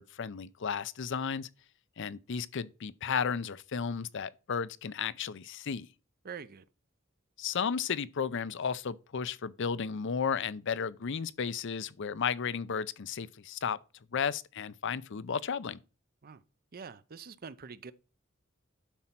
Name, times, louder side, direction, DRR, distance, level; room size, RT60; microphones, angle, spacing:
voice 1, 0.0-1.5 2.0-5.9 7.4-13.8 14.1-15.8, left 6 dB, 65° left, 0.6 m, -34 dB
voice 2, 6.2-6.6 16.2-16.4 16.7-17.9, right 6 dB, 45° right, 0.6 m, -45 dB
11.5 x 4.3 x 5.9 m
head